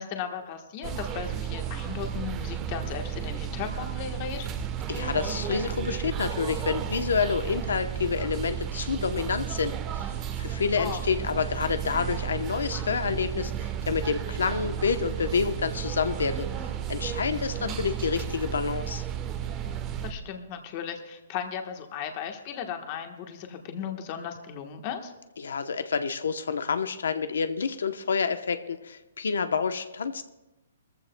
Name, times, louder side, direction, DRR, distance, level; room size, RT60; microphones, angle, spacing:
voice 1, 0.0-4.5 10.8-11.0 17.5-17.8 20.0-25.1, left 8 dB, 25° left, 5 dB, 1.2 m, -36 dB
sound 1, 0.8-20.1, right 9 dB, 20° right, 1.0 m, -33 dB
voice 2, 4.9-19.0 25.4-30.2, left 5 dB, 90° left, 9 dB, 0.8 m, -28 dB
20.5 x 14.5 x 2.2 m, 1.0 s
hypercardioid pair, 170°, 0 cm